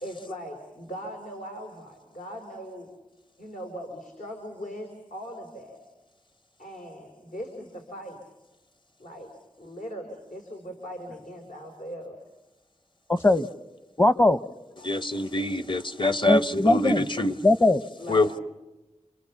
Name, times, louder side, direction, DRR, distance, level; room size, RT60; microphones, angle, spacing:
voice 1, 0.0-2.9 3.4-5.8 6.6-8.2 9.0-9.3 9.6-12.2 14.8-14.9 15.7-15.9 18.0-18.4, equal, 80° left, 1 dB, 4.0 m, -40 dB
voice 2, 13.1-13.5 14.0-14.4 16.3-17.0 17.4-17.8, left 2 dB, 20° left, 14 dB, 0.8 m, -20 dB
voice 3, 14.8-17.3 18.1-18.4, left 2 dB, 40° left, 13 dB, 1.1 m, -25 dB
29.0 x 27.0 x 7.2 m, 1.1 s
wide cardioid pair, 60°, 13 cm